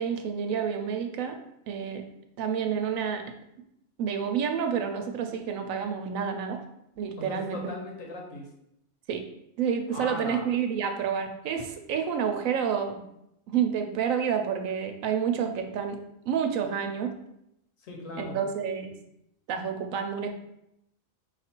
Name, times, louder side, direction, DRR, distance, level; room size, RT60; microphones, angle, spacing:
voice 1, 0.0-1.4 1.7-2.0 2.4-3.2 4.0-6.6 7.0-7.7 9.1-9.2 9.6-13.0 13.5-16.0 16.3-17.1 18.2-18.9 19.5-20.3, right 7 dB, 85° right, 5 dB, 1.0 m, -29 dB
voice 2, 7.2-8.5 9.9-10.5 17.8-18.4, left 1 dB, 80° left, 0 dB, 1.4 m, -38 dB
4.8 x 2.4 x 4.4 m, 0.80 s
omnidirectional pair, 1.4 m